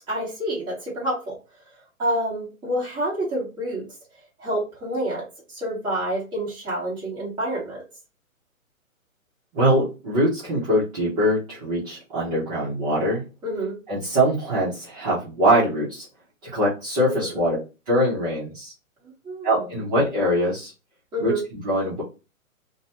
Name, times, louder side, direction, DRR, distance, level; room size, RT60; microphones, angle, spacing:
voice 1, 0.1-1.3 2.0-3.8 4.4-7.8 13.4-13.8 17.1-17.3 19.2-19.7 21.1-21.4, right 1 dB, 10° right, -7 dB, 1.2 m, -28 dB
voice 2, 9.5-13.2 13.9-16.0 16.4-17.6 17.9-18.7 19.4-20.7 21.2-21.3 21.6-22.0, equal, 25° right, -8 dB, 0.9 m, -22 dB
2.6 x 2.3 x 2.9 m, 0.30 s
figure-of-eight pair, 130°, 42 cm